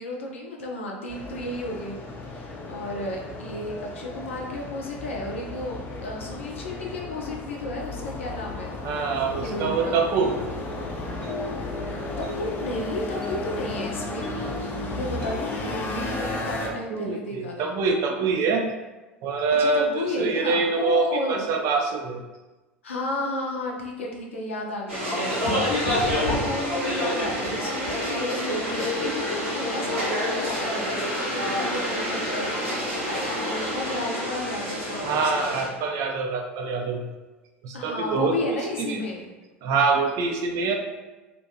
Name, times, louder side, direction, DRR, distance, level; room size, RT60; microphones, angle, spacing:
voice 1, 0.0-1.9 2.2-8.8 9.4-10.0 12.2-14.3 14.9-17.8 19.6-21.5 22.8-35.5 37.7-39.3, left 2 dB, 80° left, 0 dB, 0.5 m, -33 dB
sound 1, 1.1-16.7, left 2 dB, 30° left, 0.5 m, -34 dB
voice 2, 8.8-10.3 16.6-18.6 19.2-22.2 35.0-37.0 37.6-39.0 39.6-40.7, right 4 dB, 55° right, 3 dB, 0.4 m, -25 dB
sound 2, 9.4-15.6, left 1 dB, 10° left, 1.0 m, -39 dB
sound 3, 24.9-35.7, equal, 85° right, 1.1 m, -27 dB
2.6 x 2.2 x 2.6 m, 1.1 s
hypercardioid pair, 75°, 7 cm